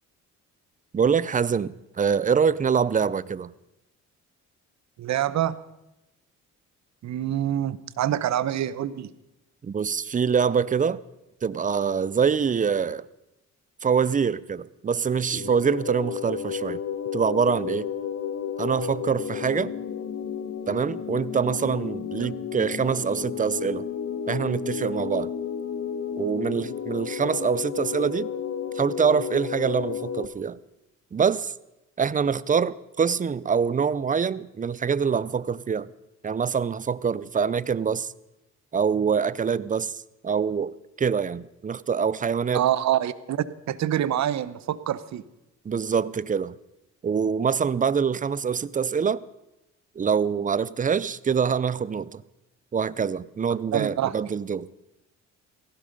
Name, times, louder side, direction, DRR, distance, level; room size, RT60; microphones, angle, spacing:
voice 1, 0.9-3.5 9.6-11.0 11.4-13.0 13.8-16.8 17.1-17.9 18.6-19.7 20.7-23.9 24.3-25.3 26.2-28.3 28.7-30.6 31.1-31.5 32.0-35.9 36.2-38.1 38.7-42.6 45.6-46.6 47.0-49.2 50.0-52.2 52.7-54.7, right 6 dB, 25° right, 0.6 m, -25 dB
voice 2, 5.0-5.6 7.0-9.1 22.2-22.3 42.5-45.2 53.7-54.1, right 11 dB, 65° right, 0.9 m, -26 dB
sound 1, 15.3-30.3, left 8 dB, 60° left, 1.6 m, -32 dB
17.5 x 15.5 x 5.4 m
cardioid pair, 90°, 30 cm